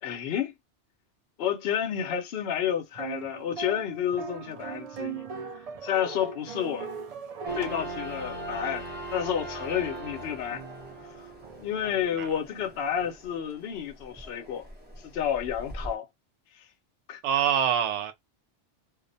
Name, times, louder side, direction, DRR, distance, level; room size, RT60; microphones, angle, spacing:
voice 1, 0.0-0.5 1.4-5.3 5.8-6.9 7.5-8.9 9.1-10.6 11.2-11.3 11.6-14.6 15.0-16.0 17.1-17.2, left 9 dB, 65° left, 0.8 m, -30 dB
sound 1, 2.9-9.4 9.8-9.9 10.5-13.1, right 6 dB, 65° right, 0.3 m, -40 dB
sound 2, 7.5-15.9, right 1 dB, 10° right, 0.8 m, -40 dB
voice 2, 17.2-18.1, right 9 dB, 80° right, 0.9 m, -25 dB
2.4 x 2.1 x 2.6 m
omnidirectional pair, 1.2 m